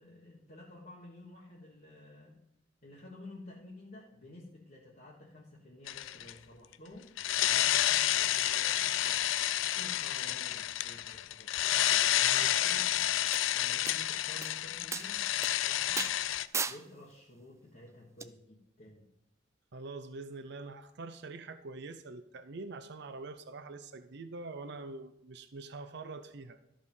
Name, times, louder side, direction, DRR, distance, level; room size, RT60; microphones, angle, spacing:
voice 1, 0.0-2.4 2.8-7.1 7.5-9.4 9.8-11.6 12.3-13.0 13.5-16.2 16.7-19.1, left 1 dB, 45° left, -4 dB, 1.5 m, -52 dB
sound 1, 5.9-6.3 7.2-16.5, left 13 dB, 90° left, 0.4 m, -30 dB
voice 2, 12.2-12.6 19.7-26.6, right 3 dB, 60° right, 10 dB, 0.6 m, -44 dB
sound 2, 13.3-13.4 13.9-14.0 14.4-14.5 14.9-15.1 15.4-15.5 16.0-16.1 16.5-16.8 18.2-18.3, right 5 dB, 15° right, 0.4 m, -34 dB
13.0 x 5.0 x 5.4 m, 0.81 s
head